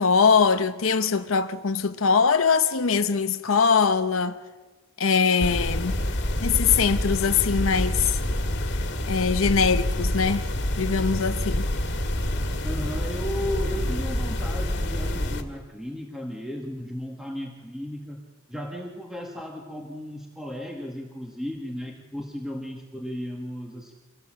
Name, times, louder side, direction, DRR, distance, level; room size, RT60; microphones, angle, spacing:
voice 1, 0.0-4.4 5.0-6.0 6.4-8.2 9.1-10.4 10.8-11.7, left 5 dB, 85° left, 0.8 m, -22 dB
sound 1, 5.4-15.4, left 1 dB, 60° left, 2.0 m, -27 dB
voice 2, 12.6-18.2 18.5-23.9, equal, ahead, 1.7 m, -35 dB
25.5 x 18.0 x 7.5 m
head